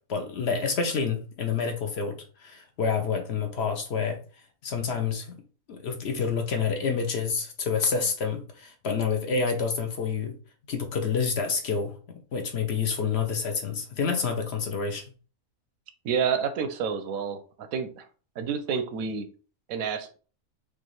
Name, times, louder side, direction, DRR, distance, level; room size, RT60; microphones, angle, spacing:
voice 1, 0.1-4.2 4.6-5.3 5.7-10.4 10.7-15.0, left 5 dB, 60° left, 5 dB, 0.8 m, -28 dB
voice 2, 16.0-18.0 18.4-19.3 19.7-20.2, right 6 dB, 80° right, 9 dB, 1.0 m, -29 dB
4.8 x 2.4 x 3.0 m, 0.39 s
omnidirectional pair, 1.4 m